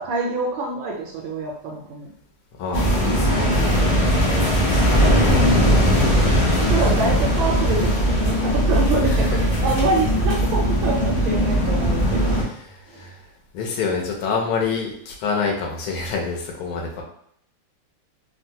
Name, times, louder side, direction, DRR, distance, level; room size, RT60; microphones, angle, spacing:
voice 1, 0.0-2.1 5.1-6.0 6.7-12.5 12.9-13.1, right 2 dB, 75° right, -1 dB, 1.2 m, -26 dB
voice 2, 2.6-3.5 4.1-4.2 7.4-7.5 9.1-9.3 9.6-9.7 12.4-13.2 13.5-17.0, left 5 dB, 75° left, 0 dB, 1.5 m, -27 dB
sound 1, 2.7-12.4, equal, 60° left, 0.5 m, -19 dB
3.7 x 2.1 x 2.7 m, 0.67 s
omnidirectional pair, 2.4 m